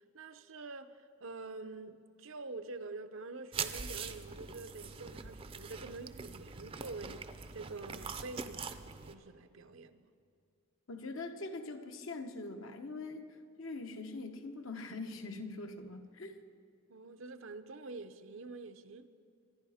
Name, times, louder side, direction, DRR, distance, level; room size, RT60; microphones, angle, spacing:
voice 1, 0.0-10.1 16.9-19.1, right 3 dB, 65° right, 0.7 m, -47 dB
sound 1, 3.5-9.1, right 5 dB, 25° right, 0.6 m, -43 dB
voice 2, 10.9-16.4, left 3 dB, 70° left, 1.1 m, -43 dB
25.5 x 11.0 x 4.9 m
head